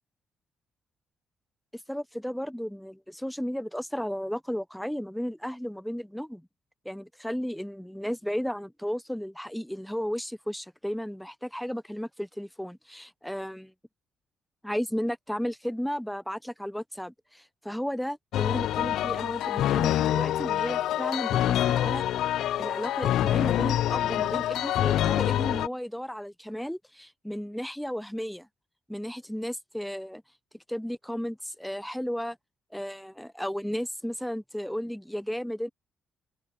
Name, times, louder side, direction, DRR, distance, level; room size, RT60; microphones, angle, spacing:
voice 1, 1.9-6.5 6.8-13.7 14.6-22.0 22.6-28.5 28.9-30.2 30.7-32.4 32.7-35.7, equal, ahead, 0.5 m, -34 dB
sound 1, 18.3-25.7, left 12 dB, 80° left, 0.4 m, -26 dB
open air
cardioid pair, 90°, 0 cm